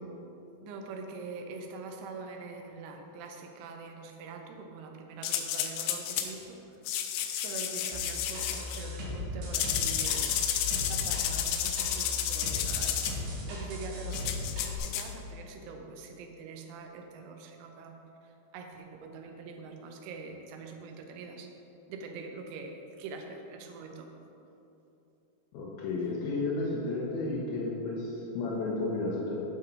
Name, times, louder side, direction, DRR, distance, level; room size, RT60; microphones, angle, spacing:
voice 1, 0.6-6.8 7.4-21.5 21.9-24.1, right 4 dB, 85° right, 3 dB, 3.2 m, -44 dB
sound 1, 5.2-6.3 6.9-8.8 9.5-13.2 14.1-15.1, left 10 dB, 90° left, 3.0 m, -31 dB
sound 2, 7.9-14.8, left 2 dB, 60° right, 2.8 m, -37 dB
voice 2, 25.5-29.4, left 2 dB, 70° left, -4 dB, 2.5 m, -32 dB
8.2 x 6.3 x 5.4 m, 2.9 s
omnidirectional pair, 5.3 m